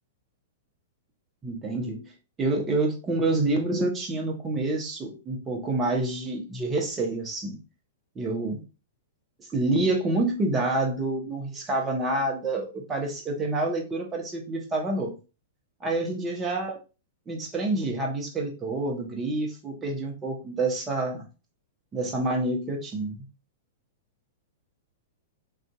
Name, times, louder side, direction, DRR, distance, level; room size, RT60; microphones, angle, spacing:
voice 1, 1.4-2.1 2.4-7.6 8.1-8.6 9.4-15.1 15.8-16.8 17.3-21.2 21.9-23.2, right 2 dB, 20° right, 0 dB, 0.9 m, -28 dB
2.6 x 2.4 x 2.3 m, 0.32 s
figure-of-eight pair, 105°, 0 cm